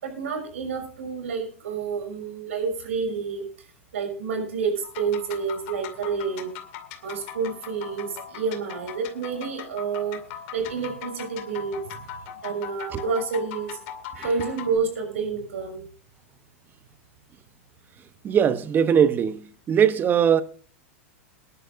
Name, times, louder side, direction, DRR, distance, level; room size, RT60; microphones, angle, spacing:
voice 1, 0.0-3.7 3.9-6.5 7.0-10.3 10.5-12.1 12.4-13.8 14.1-15.9, right 5 dB, 80° right, 6.0 m, -29 dB
sound 1, 4.8-14.8, left 9 dB, 55° left, 2.4 m, -40 dB
voice 2, 18.2-19.4 19.7-20.4, right 8 dB, 25° right, 1.0 m, -19 dB
22.0 x 11.0 x 2.6 m
hypercardioid pair, 110°, 7 cm